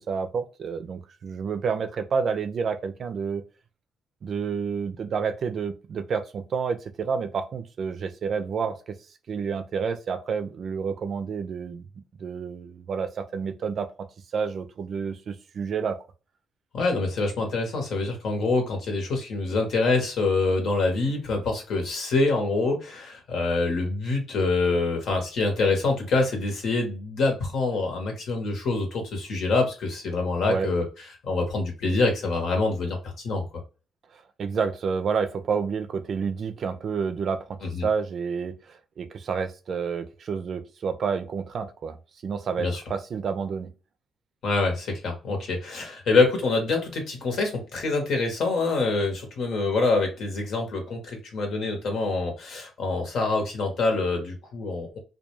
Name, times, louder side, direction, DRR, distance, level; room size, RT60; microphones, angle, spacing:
voice 1, 0.1-3.4 4.2-9.0 9.3-11.8 12.2-14.1 14.3-16.0 30.5-30.7 34.1-42.0 42.2-43.7, right 6 dB, 55° right, 0.4 m, -29 dB
voice 2, 16.7-30.8 31.3-33.0 33.2-33.4 37.7-37.9 42.6-42.8 44.4-55.0, left 3 dB, 70° left, 1.0 m, -25 dB
2.3 x 2.3 x 3.0 m
cardioid pair, 90°, 0 cm